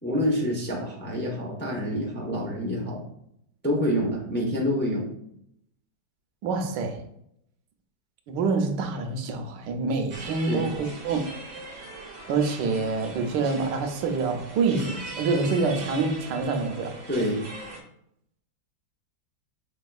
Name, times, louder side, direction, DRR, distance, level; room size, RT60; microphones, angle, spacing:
voice 1, 0.0-3.0 3.6-5.1 10.4-10.7 17.1-17.4, equal, 10° left, -3 dB, 0.5 m, -27 dB
voice 2, 6.4-7.0 8.3-11.3 12.3-17.0, right 4 dB, 90° right, 5 dB, 1.3 m, -26 dB
sound 1, 10.1-17.8, right 3 dB, 70° right, 1.6 m, -40 dB
6.2 x 3.5 x 2.3 m, 0.74 s
omnidirectional pair, 1.9 m